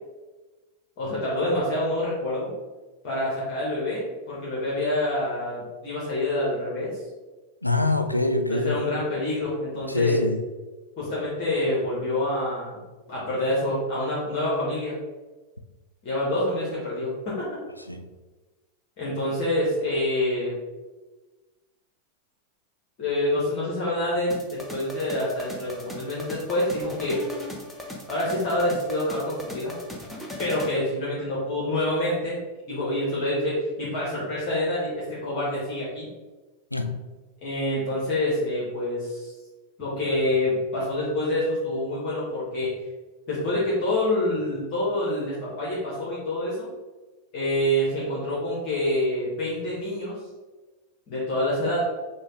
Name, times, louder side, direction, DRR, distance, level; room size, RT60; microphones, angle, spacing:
voice 1, 1.0-2.5 3.0-7.0 8.5-10.2 11.0-12.8 13.1-15.0 16.0-17.5 19.0-20.5 23.0-27.2 28.1-29.8 30.4-32.4 32.7-36.1 37.4-39.3 39.8-42.7 43.3-46.7 47.3-50.2 51.1-51.8, left 1 dB, 40° left, -7 dB, 1.5 m, -27 dB
voice 2, 7.6-8.8 9.9-10.4 17.9-18.1 36.7-37.1, left 2 dB, 85° left, 7 dB, 0.4 m, -25 dB
sound 1, 24.3-30.8, left 1 dB, 5° left, 0.8 m, -38 dB
6.3 x 2.5 x 3.3 m, 1.2 s
figure-of-eight pair, 90°, 0 cm